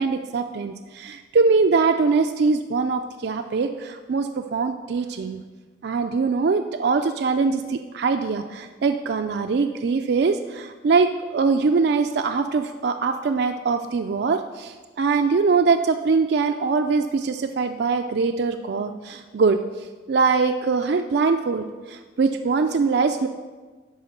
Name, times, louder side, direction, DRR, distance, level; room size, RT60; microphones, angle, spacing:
voice 1, 0.0-5.4 5.8-23.3, right 4 dB, 60° right, 6 dB, 0.4 m, -22 dB
11.0 x 4.4 x 6.4 m, 1.4 s
head